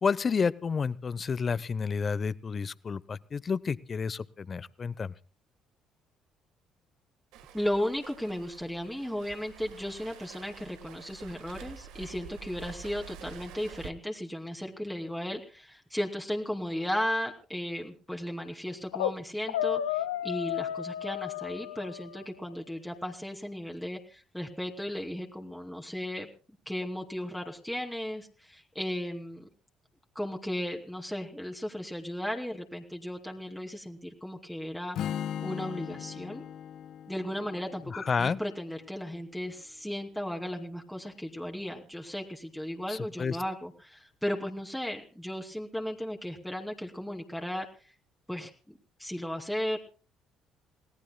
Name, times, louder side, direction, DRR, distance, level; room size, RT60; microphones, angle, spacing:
voice 1, 0.0-5.1 37.9-38.4 42.9-43.4, left 5 dB, 40° left, 19 dB, 0.8 m, -30 dB
Waves surf, 7.3-13.9, right 8 dB, 75° right, 1.5 m, -48 dB
voice 2, 7.5-26.3 26.7-29.5 30.1-36.4 37.1-47.7 48.3-48.5 49.0-49.8, left 1 dB, 5° left, 1 dB, 2.6 m, -35 dB
sound 1, 18.7-19.2 19.5-22.3, left 12 dB, 85° left, 0.7 m, -32 dB
Strum, 34.9-39.1, left 9 dB, 65° left, 1.5 m, -39 dB
29.0 x 18.0 x 2.2 m, 0.37 s
hypercardioid pair, 50°, 0 cm